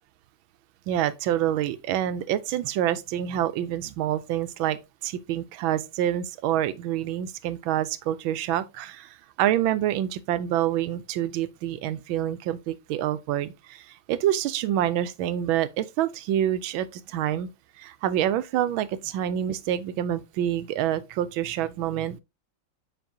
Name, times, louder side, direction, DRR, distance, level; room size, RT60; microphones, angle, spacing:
voice 1, 0.9-17.5 17.8-22.2, right 11 dB, 85° right, 1.4 m, -27 dB
7.2 x 5.4 x 2.7 m
omnidirectional pair, 2.1 m